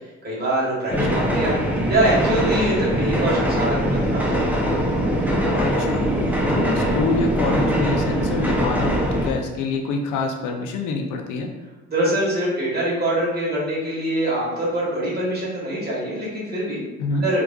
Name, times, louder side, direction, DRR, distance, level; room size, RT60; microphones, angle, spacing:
voice 1, 0.2-1.5 1.9-4.4 11.9-16.8 17.2-17.4, right 1 dB, 35° right, -6 dB, 1.4 m, -23 dB
sound 1, 0.9-9.3, equal, 5° right, 0.5 m, -22 dB
voice 2, 5.5-6.0 6.5-11.5 17.0-17.2, left 3 dB, 85° left, 3 dB, 0.6 m, -26 dB
4.5 x 2.5 x 2.3 m, 1.1 s
cardioid pair, 90°, 30 cm